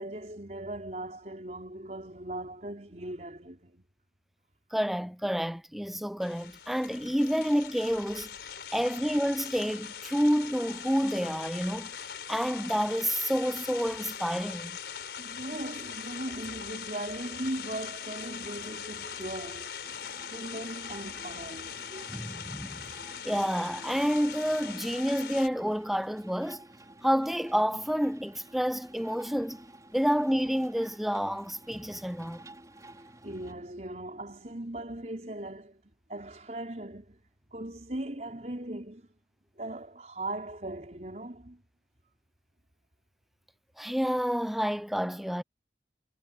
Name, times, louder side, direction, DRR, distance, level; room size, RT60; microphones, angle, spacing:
voice 1, 0.0-3.8 15.2-19.8 20.3-22.1 32.8-35.8 36.1-37.2 37.5-39.1 39.6-41.6, right 1 dB, 40° right, 5.2 m, -39 dB
voice 2, 4.7-8.3 8.7-11.9 12.3-14.7 22.1-22.8 23.2-26.6 27.0-29.6 29.9-32.4 43.8-45.4, equal, ahead, 0.5 m, -29 dB
sound 1, 6.2-25.5, left 7 dB, 75° left, 4.1 m, -41 dB
sound 2, 19.8-33.5, right 1 dB, 20° right, 4.5 m, -52 dB
head